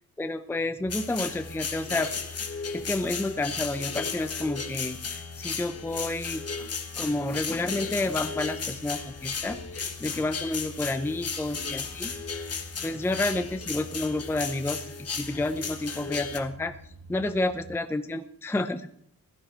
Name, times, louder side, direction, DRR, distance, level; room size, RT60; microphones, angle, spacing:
voice 1, 0.2-2.1 2.7-6.4 7.0-12.1 12.8-16.7 17.1-18.9, left 2 dB, 5° left, 9 dB, 0.5 m, -30 dB
sound 1, 0.8-17.7, left 2 dB, 75° left, 4.1 m, -46 dB
sound 2, 0.9-16.4, left 5 dB, 40° left, 1.4 m, -35 dB
16.0 x 11.5 x 4.4 m, 0.65 s
wide cardioid pair, 145°, 39 cm